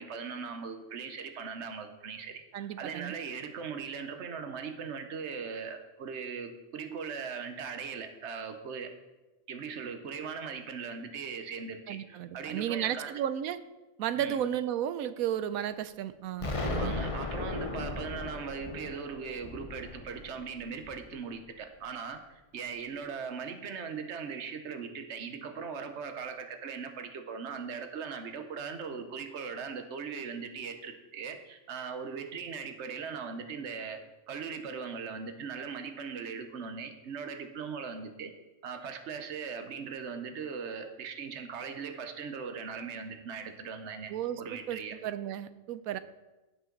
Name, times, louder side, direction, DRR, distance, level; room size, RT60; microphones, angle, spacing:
voice 1, 0.0-8.9 9.5-13.1 14.2-14.4 16.6-34.0 34.3-38.3 38.6-44.1 44.4-45.0, right 6 dB, 55° right, 7 dB, 1.2 m, -39 dB
voice 2, 2.5-3.2 11.9-13.6 14.0-17.0 44.1-46.0, right 10 dB, 75° right, 13 dB, 1.0 m, -33 dB
Explosion, 16.4-21.3, left 3 dB, 30° left, 0.7 m, -36 dB
16.5 x 5.5 x 3.9 m, 1.1 s
omnidirectional pair, 1.5 m